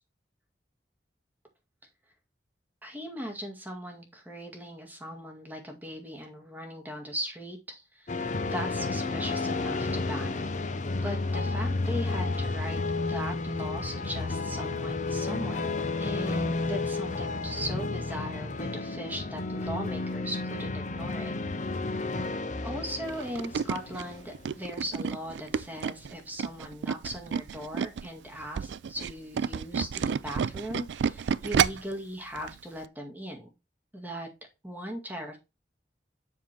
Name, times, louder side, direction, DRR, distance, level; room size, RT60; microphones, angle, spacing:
voice 1, 2.8-8.1 8.4-21.8 22.6-33.5 33.9-34.3 34.6-35.4, equal, 10° right, 2 dB, 2.0 m, -39 dB
sound 1, 8.1-24.9, left 3 dB, 45° left, 0.8 m, -32 dB
Tools, 23.1-28.1 28.4-31.9 32.4-32.5 32.8-32.9, right 7 dB, 80° right, 0.4 m, -30 dB
7.4 x 3.7 x 5.9 m, 0.25 s
head